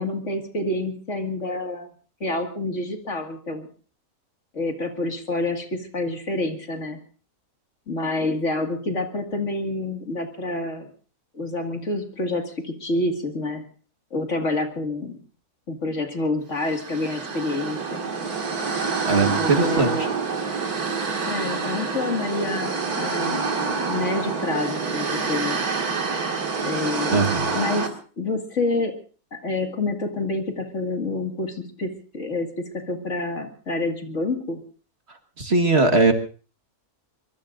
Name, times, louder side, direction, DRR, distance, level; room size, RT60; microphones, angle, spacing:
voice 1, 0.0-1.9 2.2-3.7 4.5-7.0 7.9-10.9 11.3-13.6 14.1-15.2 15.7-18.0 19.2-20.1 21.2-23.4 23.9-25.6 26.6-27.2 27.5-28.9 29.3-34.6, left 2 dB, 55° left, 4 dB, 2.5 m, -28 dB
sound 1, 16.6-27.9, right 5 dB, 85° right, 2.6 m, -27 dB
voice 2, 19.1-19.9 27.1-27.5 35.4-36.1, right 3 dB, 45° right, 6 dB, 1.9 m, -20 dB
24.0 x 23.0 x 2.6 m, 0.39 s
omnidirectional pair, 1.6 m